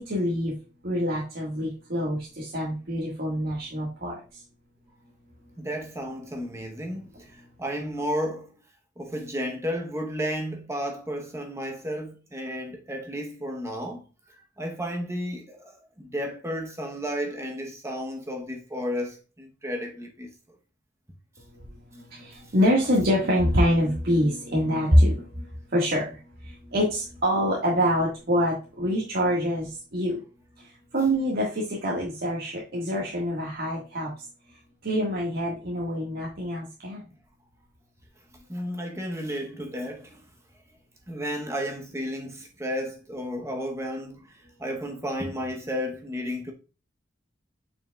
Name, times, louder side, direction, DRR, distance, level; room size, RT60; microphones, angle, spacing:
voice 1, 0.1-0.5 0.8-4.1 21.9-25.5 25.7-26.2 26.4-30.2 30.9-34.1 34.8-37.0, equal, 60° right, 1.6 m, -25 dB
voice 2, 5.6-8.5 9.0-14.0 14.3-20.3 38.5-40.2 41.1-44.3 44.6-46.5, equal, 15° right, 0.8 m, -33 dB
7.3 x 6.1 x 2.3 m
head